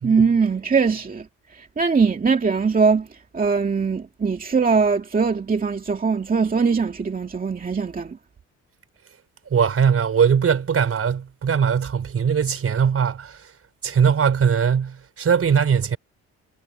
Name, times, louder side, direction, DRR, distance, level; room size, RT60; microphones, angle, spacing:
voice 1, 0.0-1.3 1.5-3.1 3.3-8.2, right 5 dB, 30° right, 2.2 m, -21 dB
voice 2, 9.5-13.4 13.8-16.0, right 7 dB, 50° right, 5.2 m, -20 dB
cardioid pair, 90°, 30 cm